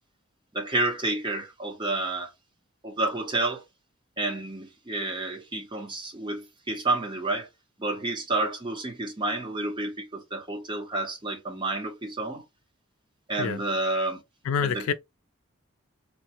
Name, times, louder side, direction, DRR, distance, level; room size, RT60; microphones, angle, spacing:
voice 1, 0.5-2.3 2.8-3.6 4.2-7.5 7.8-12.4 13.3-14.2 14.6-14.9, right 2 dB, 25° right, 0.7 m, -30 dB
voice 2, 14.4-14.9, left 7 dB, 90° left, 0.3 m, -27 dB
3.1 x 2.0 x 2.8 m
head